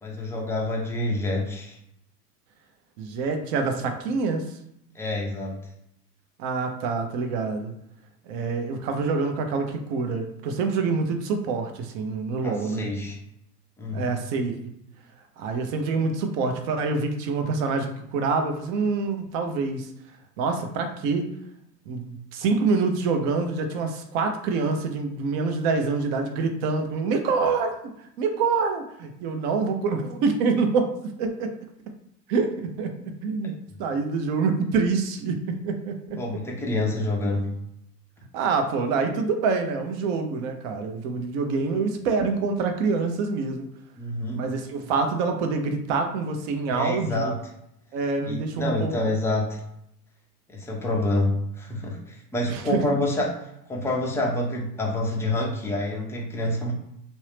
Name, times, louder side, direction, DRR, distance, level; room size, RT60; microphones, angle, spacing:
voice 1, 0.0-1.8 4.9-5.6 12.4-13.2 13.8-14.2 36.2-37.5 44.0-44.4 46.7-47.4 48.3-49.6 50.5-56.7, left 1 dB, 5° left, -1 dB, 0.5 m, -27 dB
voice 2, 3.0-4.6 6.4-7.7 8.3-12.9 13.9-14.7 15.4-19.9 20.4-21.3 21.9-27.7 28.2-30.9 31.2-31.5 32.3-32.9 33.2-36.2 38.3-43.7 44.3-47.3 47.9-48.9 52.5-52.8, right 4 dB, 45° right, 5 dB, 0.8 m, -26 dB
3.1 x 2.7 x 3.3 m, 0.78 s
hypercardioid pair, 95°, 50 cm